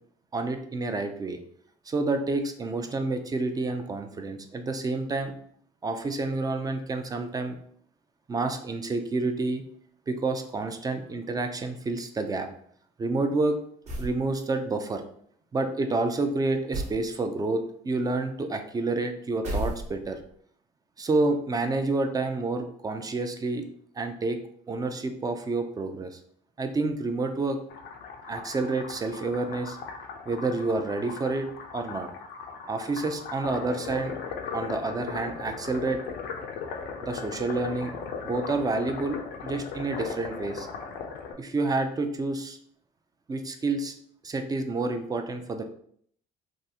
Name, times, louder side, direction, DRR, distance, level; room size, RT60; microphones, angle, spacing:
voice 1, 0.3-1.4 1.9-5.3 5.8-7.6 8.3-9.6 10.1-12.5 13.0-13.6 14.0-15.0 15.5-20.2 21.0-23.6 23.9-24.4 24.7-26.2 26.6-27.6 28.3-29.8 30.3-32.1 32.7-34.1 34.5-36.0 37.0-37.9 38.2-40.7 41.4-42.6 43.3-43.9 44.2-45.6, right 3 dB, 20° right, 6 dB, 0.4 m, -29 dB
sound 1, 13.8-14.2 16.7-17.0 19.4-20.2, right 2 dB, 40° right, 0.8 m, -32 dB
sound 2, 27.7-41.3, left 5 dB, 85° left, 0.5 m, -38 dB
3.4 x 2.4 x 2.8 m, 0.63 s
cardioid pair, 110°, 17 cm